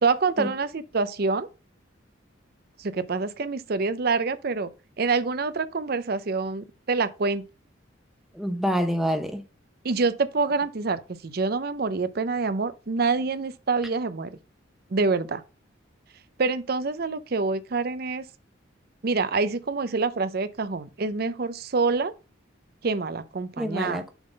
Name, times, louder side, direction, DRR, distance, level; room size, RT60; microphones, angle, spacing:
voice 1, 0.0-1.5 2.8-4.7 5.0-7.4 9.8-14.4 14.9-15.4 16.4-18.3 19.0-22.1 22.8-24.0, right 4 dB, 50° right, 0.6 m, -26 dB
voice 2, 8.3-9.4 23.6-24.1, equal, ahead, 0.8 m, -27 dB
7.1 x 3.8 x 5.2 m
head